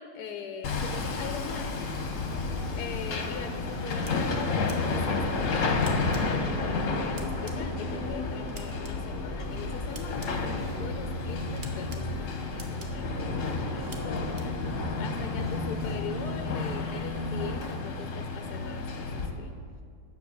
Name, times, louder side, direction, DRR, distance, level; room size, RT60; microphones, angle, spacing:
voice 1, 0.0-1.7 2.8-19.6, left 7 dB, 75° left, 6 dB, 1.2 m, -42 dB
Hammer, 0.6-19.3, left 3 dB, 55° left, 1.3 m, -31 dB
sound 1, 2.0-17.6, left 2 dB, 15° right, 2.9 m, -43 dB
sound 2, 2.6-2.7 4.1-4.2 4.7-4.8 5.8-6.2 7.2-7.5 8.5-8.9 9.9-10.3 11.6-12.0 12.6-12.9 13.9-14.0 14.4-14.5, right 3 dB, 35° right, 1.0 m, -44 dB
10.0 x 7.0 x 6.5 m, 2.4 s
omnidirectional pair, 1.7 m